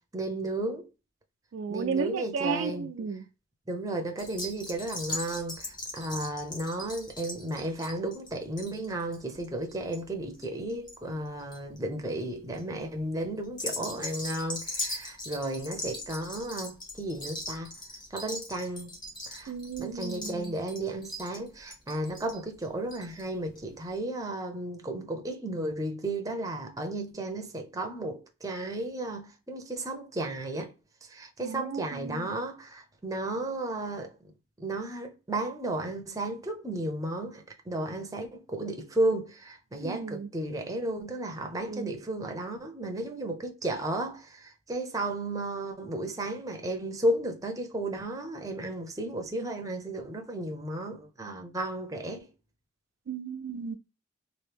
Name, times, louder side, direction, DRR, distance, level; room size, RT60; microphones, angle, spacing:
voice 1, 0.1-0.9 1.7-2.9 3.7-17.7 18.1-19.0 19.3-19.5 19.8-30.7 31.0-34.3 34.6-52.3, right 1 dB, 15° right, 0.6 m, -34 dB
voice 2, 1.5-3.2 19.5-20.5 31.4-32.3 39.8-40.3 41.7-42.0 53.1-53.8, right 5 dB, 70° right, 0.3 m, -34 dB
sound 1, 4.2-11.0 11.2-11.8 12.3-12.6 13.4-23.2 23.5-23.6 23.9-24.0, left 1 dB, 20° left, 0.9 m, -39 dB
3.1 x 2.6 x 3.3 m
head